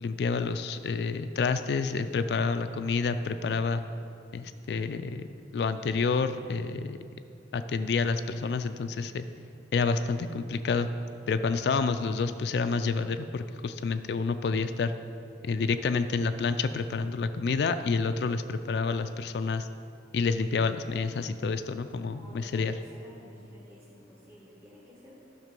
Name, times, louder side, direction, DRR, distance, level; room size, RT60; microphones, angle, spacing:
voice 1, 0.0-3.8 4.3-5.3 5.5-7.0 7.5-9.3 9.7-10.9 11.3-14.9 15.4-19.7 20.1-22.7, left 4 dB, 65° left, 10 dB, 0.3 m, -29 dB
voice 2, 22.0-25.2, left 1 dB, 15° right, -7 dB, 1.4 m, -53 dB
11.0 x 5.9 x 5.2 m, 2.5 s
head